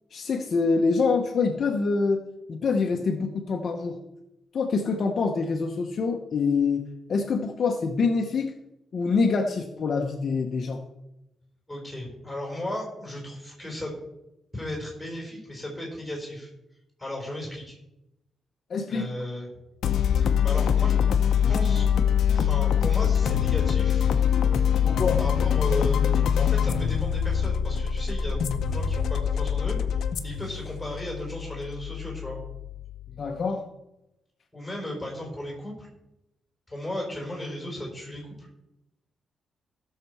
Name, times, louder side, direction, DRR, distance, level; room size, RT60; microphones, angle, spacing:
voice 1, 0.1-2.2 2.5-4.0 4.5-8.5 8.9-10.8 18.7-19.1 24.8-25.2 33.2-33.6, left 4 dB, 45° left, 3 dB, 0.9 m, -25 dB
voice 2, 11.7-13.9 14.5-16.5 17.0-17.8 18.9-19.5 20.4-20.9 21.5-21.8 22.3-24.1 25.2-32.4 34.5-35.9 36.7-38.5, left 1 dB, ahead, -2 dB, 4.3 m, -35 dB
sound 1, 19.8-33.2, left 8 dB, 70° left, 0.7 m, -24 dB
16.0 x 6.6 x 4.8 m, 0.90 s
wide cardioid pair, 170°, 0 cm